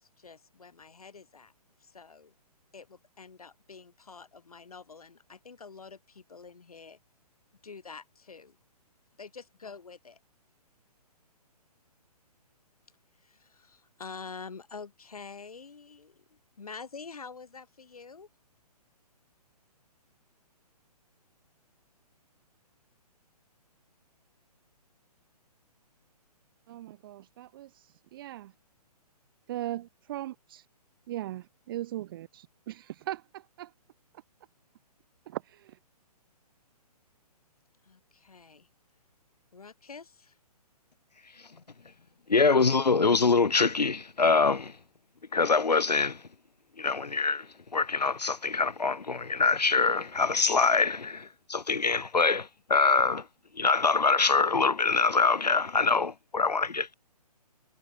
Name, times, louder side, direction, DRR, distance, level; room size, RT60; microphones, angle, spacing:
voice 1, 0.0-1.5 1.8-2.3 2.7-7.0 7.6-8.6 9.2-10.2 13.2-18.3 37.8-38.7 39.5-40.4, left 5 dB, 65° left, 5.3 m, -47 dB
voice 2, 26.7-28.5 29.5-30.7 31.1-33.7 35.3-35.8, right 14 dB, 35° right, 1.8 m, -39 dB
voice 3, 42.3-44.7 45.3-46.2 46.8-47.5 47.7-53.3 53.6-56.9, left 4 dB, 90° left, 0.5 m, -24 dB
figure-of-eight pair, 130°, 21 cm